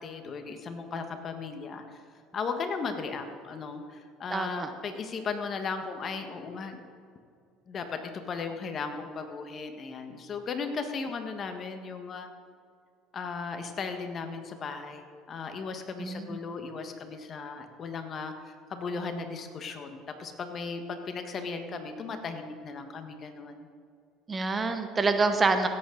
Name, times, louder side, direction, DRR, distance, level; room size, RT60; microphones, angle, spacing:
voice 1, 0.0-1.8 2.3-6.8 7.7-12.3 13.1-23.6, left 4 dB, 40° left, 6 dB, 1.4 m, -36 dB
voice 2, 4.3-4.7 16.0-16.4 24.3-25.7, right 3 dB, 25° right, 8 dB, 1.0 m, -27 dB
16.5 x 8.5 x 4.0 m, 2.3 s
supercardioid pair, 90°, 0 cm